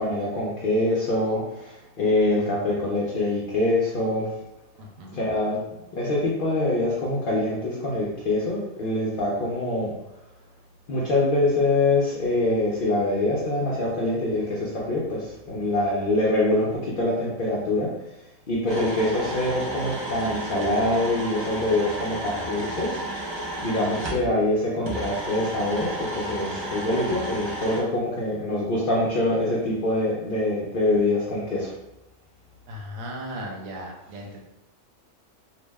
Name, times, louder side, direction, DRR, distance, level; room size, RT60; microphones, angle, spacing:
voice 1, 0.0-4.3 5.1-5.6 5.9-9.9 10.9-17.9 18.5-23.3 23.6-31.7, left 2 dB, 60° left, -5 dB, 0.6 m, -24 dB
voice 2, 4.8-5.2 32.7-34.4, equal, 80° right, -1 dB, 1.1 m, -37 dB
sound 1, 18.7-24.2 24.8-27.8, right 1 dB, 45° right, 0.3 m, -32 dB
2.6 x 2.0 x 3.3 m, 0.90 s
omnidirectional pair, 1.4 m